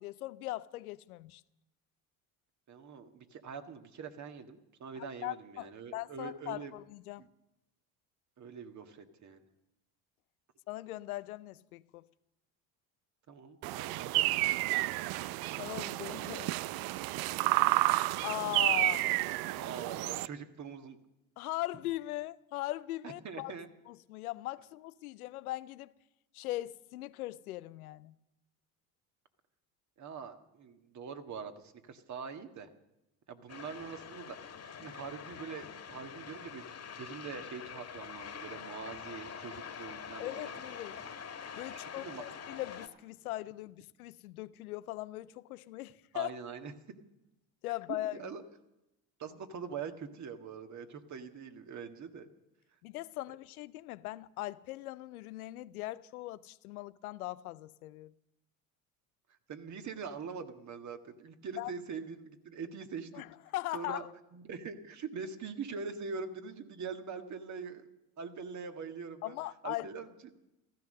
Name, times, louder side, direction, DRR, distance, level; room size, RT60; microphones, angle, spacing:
voice 1, 0.0-1.4 5.2-7.3 10.7-12.1 15.6-16.5 18.2-19.1 21.4-23.5 23.9-25.9 26.3-28.1 40.2-41.0 41.6-46.3 47.6-48.2 52.8-58.1 61.6-61.7 63.1-63.3 63.5-64.1 69.2-69.9, left 16 dB, 90° left, 0.6 m, -40 dB
voice 2, 2.7-6.7 7.2-7.3 8.4-9.4 13.3-14.9 19.5-21.0 23.0-23.7 30.0-32.7 33.3-36.7 37.0-40.6 41.7-42.2 46.1-46.7 48.1-48.4 49.2-52.3 59.5-63.2 63.7-64.1 64.3-67.9 68.2-69.4 69.6-70.1, right 5 dB, 40° right, 1.8 m, -43 dB
sound 1, 13.6-20.3, right 18 dB, 60° right, 0.6 m, -31 dB
sound 2, 33.5-42.9, left 7 dB, 35° left, 1.9 m, -45 dB
15.5 x 14.0 x 6.6 m
hypercardioid pair, 75°, 43 cm